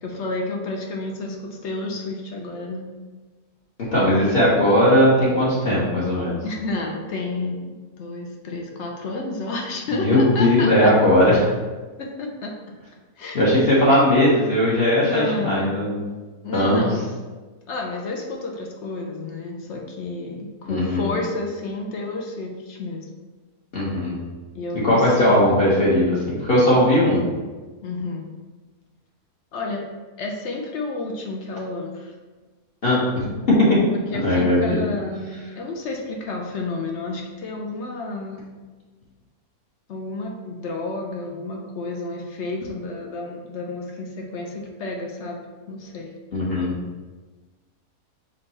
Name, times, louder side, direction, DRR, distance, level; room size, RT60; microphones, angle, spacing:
voice 1, 0.0-2.9 6.4-10.9 12.0-12.5 13.2-13.4 15.0-16.0 16.4-17.0 17.7-23.1 24.5-25.5 27.8-28.3 29.5-29.8 30.2-32.1 33.9-38.4 39.9-45.4 45.7-46.1, left 2 dB, 65° left, 1 dB, 0.7 m, -30 dB
voice 2, 3.9-6.4 10.0-11.5 13.3-16.1 16.5-16.9 20.7-21.1 23.7-24.2 24.8-27.3 32.8-33.8 34.2-34.8 46.3-46.7, left 1 dB, 45° left, -7 dB, 1.0 m, -18 dB
5.4 x 2.2 x 4.0 m, 1.3 s
omnidirectional pair, 1.7 m